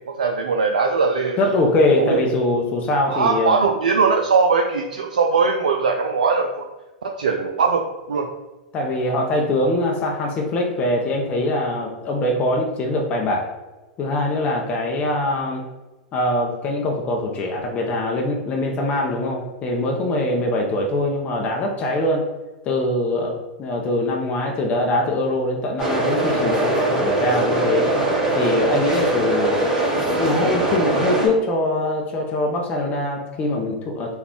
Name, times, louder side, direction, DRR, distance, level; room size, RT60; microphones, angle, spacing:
voice 1, 0.1-1.4 2.0-2.2 3.1-6.7 7.0-7.8 8.1-8.3, right 5 dB, 75° right, 2 dB, 0.3 m, -20 dB
voice 2, 1.4-3.6 8.7-13.5 14.0-15.6 16.1-22.2 22.6-27.9 28.3-29.6 30.2-34.1, left 1 dB, 30° left, 0 dB, 0.6 m, -22 dB
sound 1, 25.8-31.3, right 2 dB, 15° right, 1.3 m, -21 dB
3.4 x 2.3 x 3.6 m, 1.1 s
hypercardioid pair, 100°, 4 cm